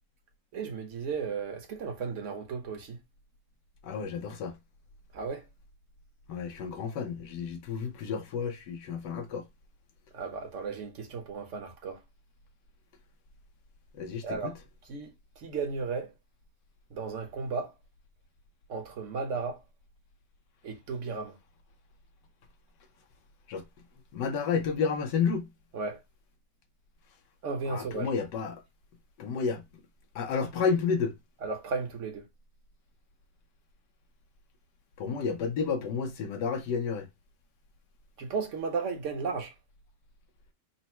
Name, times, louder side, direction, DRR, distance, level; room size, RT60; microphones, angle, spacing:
voice 1, 0.5-3.0 5.1-5.4 10.1-12.0 14.2-14.5 14.9-16.1 16.9-17.7 18.7-19.6 20.6-21.4 25.7-26.0 27.4-28.1 31.4-32.3 38.2-39.5, right 5 dB, 55° right, 1.1 m, -34 dB
voice 2, 3.8-4.6 6.3-9.5 13.9-14.5 23.5-23.6 24.1-25.5 27.7-28.6 29.2-29.6 30.1-31.1 35.0-37.1, left 5 dB, 85° left, 1.4 m, -31 dB
4.1 x 2.1 x 4.3 m
omnidirectional pair, 1.8 m